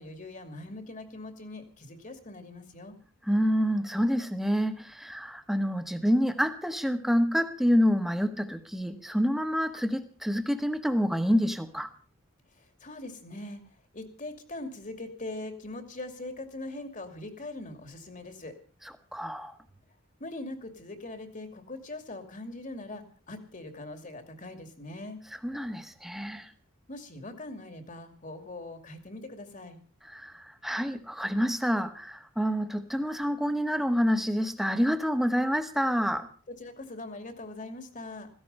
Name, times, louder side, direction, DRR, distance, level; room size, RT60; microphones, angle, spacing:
voice 1, 0.0-3.0 12.5-18.5 20.2-25.2 26.9-29.8 36.5-38.3, left 2 dB, 40° left, 7 dB, 2.5 m, -41 dB
voice 2, 3.3-11.9 19.1-19.6 25.4-26.5 30.1-36.3, equal, ahead, 7 dB, 1.5 m, -27 dB
16.5 x 15.5 x 5.5 m, 0.41 s
head